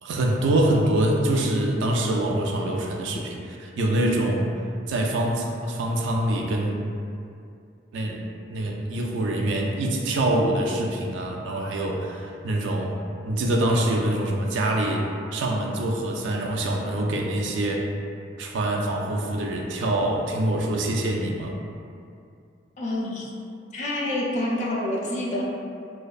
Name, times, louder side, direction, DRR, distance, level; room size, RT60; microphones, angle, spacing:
voice 1, 0.0-3.4 3.8-4.5 4.9-6.8 7.9-8.2 8.5-13.0 13.3-15.1 15.3-17.9 18.4-21.6, right 1 dB, 75° right, 0 dB, 0.3 m, -25 dB
voice 2, 22.8-23.3 23.7-25.5, left 1 dB, 40° left, -3 dB, 0.3 m, -27 dB
2.5 x 2.2 x 2.3 m, 2.4 s
head